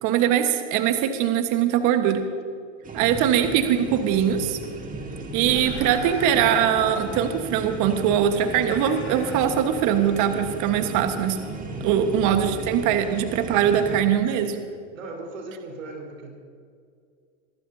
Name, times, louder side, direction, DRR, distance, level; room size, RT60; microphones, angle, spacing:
voice 1, 0.0-2.2 2.9-4.6 5.3-11.4 11.8-14.5, right 9 dB, 50° right, 7 dB, 1.5 m, -22 dB
sound 1, 2.8-14.0, right 2 dB, 20° right, 2.1 m, -36 dB
voice 2, 3.0-3.3 11.7-12.1 14.4-14.6 14.9-16.3, right 3 dB, 85° right, 0 dB, 4.6 m, -39 dB
sound 2, 5.4-12.0 12.3-12.5, left 4 dB, 35° left, 3.5 m, -40 dB
23.0 x 15.5 x 2.8 m, 2.2 s
hypercardioid pair, 100°, 38 cm